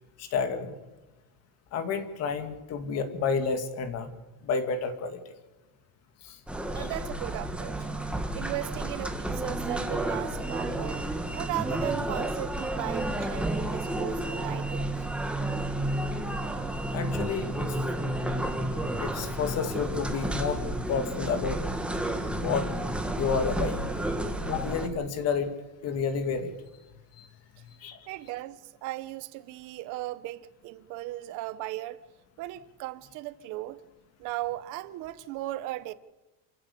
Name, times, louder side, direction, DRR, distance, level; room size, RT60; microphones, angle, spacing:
voice 1, 0.2-0.8 1.7-4.1 4.4-5.2 6.2-6.4 6.8-6.9 16.9-17.8 19.0-20.6 20.9-21.6 22.4-22.7 23.2-23.9 24.5-25.5 25.8-26.5 27.2-27.3 27.8-28.0, left 5 dB, 35° left, 2.5 m, -30 dB
sound 1, 6.5-24.9, right 1 dB, ahead, 1.6 m, -31 dB
voice 2, 6.7-7.9 8.3-15.0 24.2-24.3 28.1-32.0 32.4-33.8 34.2-35.9, right 16 dB, 45° right, 1.2 m, -37 dB
28.5 x 15.0 x 8.5 m
cardioid pair, 170°, 44 cm